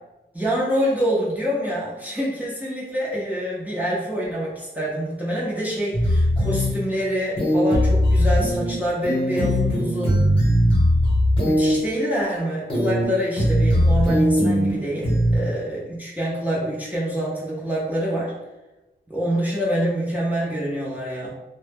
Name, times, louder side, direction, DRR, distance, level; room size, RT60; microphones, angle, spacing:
voice 1, 0.3-10.2 11.4-18.3 19.1-21.3, equal, 10° right, -6 dB, 0.6 m, -26 dB
sound 1, 5.9-6.7 7.4-8.7 9.0-11.7 12.7-13.0 13.4-14.7 15.0-15.4, equal, 30° left, 0.9 m, -19 dB
2.1 x 2.0 x 3.3 m, 1.1 s
wide cardioid pair, 125°, 19 cm